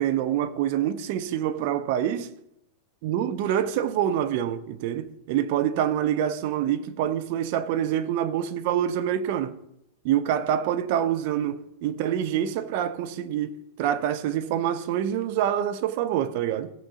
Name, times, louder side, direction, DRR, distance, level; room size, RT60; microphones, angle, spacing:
voice 1, 0.0-2.3 3.0-9.6 10.0-16.7, right 10 dB, 50° right, 0.7 m, -26 dB
16.0 x 6.1 x 3.9 m
figure-of-eight pair, 90°, 0 cm